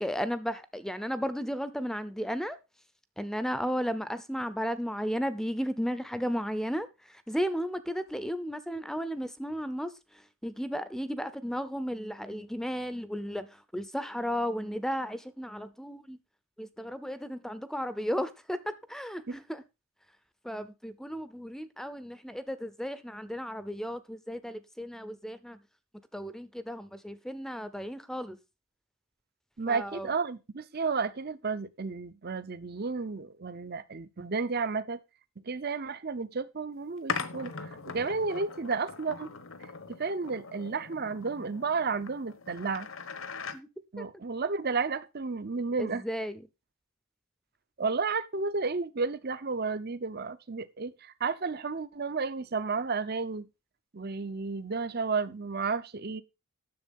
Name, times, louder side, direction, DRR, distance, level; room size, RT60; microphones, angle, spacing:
voice 1, 0.0-2.6 3.2-6.9 7.3-9.9 10.4-16.2 16.6-19.6 20.4-25.6 26.1-28.4 29.7-30.1 43.5-43.7 44.0-44.1 45.8-46.4, equal, ahead, 0.6 m, -34 dB
voice 2, 29.6-35.0 35.4-39.3 39.9-42.9 43.9-46.0 47.8-53.5 53.9-56.2, right 4 dB, 45° right, 0.7 m, -32 dB
sound 1, 37.1-43.6, left 5 dB, 65° left, 1.1 m, -40 dB
10.5 x 7.3 x 5.3 m
head